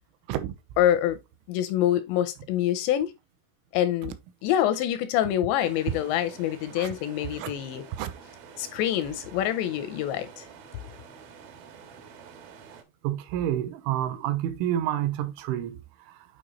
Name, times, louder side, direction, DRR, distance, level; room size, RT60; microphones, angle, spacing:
voice 1, 0.8-1.2 1.5-3.1 3.7-4.2 4.4-7.9 8.6-10.5, left 11 dB, 85° left, 2.5 m, -26 dB
sound 1, 5.6-12.8, right 6 dB, 70° right, 2.4 m, -48 dB
voice 2, 13.0-15.8 16.1-16.2, right 11 dB, 90° right, 3.1 m, -29 dB
8.9 x 4.8 x 3.0 m
omnidirectional pair, 5.5 m